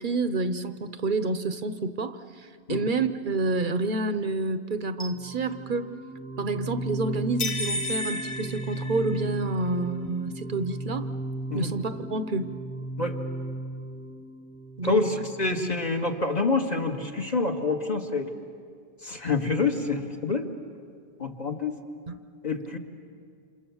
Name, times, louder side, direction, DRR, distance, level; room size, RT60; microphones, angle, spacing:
voice 1, 0.0-5.9 6.4-11.1 11.5-12.5 14.8-15.1 15.6-15.8 22.1-22.2, right 3 dB, 50° right, 11 dB, 1.0 m, -29 dB
sound 1, 5.0-15.9, right 1 dB, 10° left, 0.9 m, -36 dB
sound 2, 7.4-9.5, left 2 dB, 65° left, 1.6 m, -32 dB
voice 2, 14.8-18.3 19.0-20.5 21.2-21.8 22.4-22.8, left 3 dB, 40° left, 2 dB, 2.0 m, -27 dB
29.0 x 27.0 x 7.1 m, 2.2 s
omnidirectional pair, 1.2 m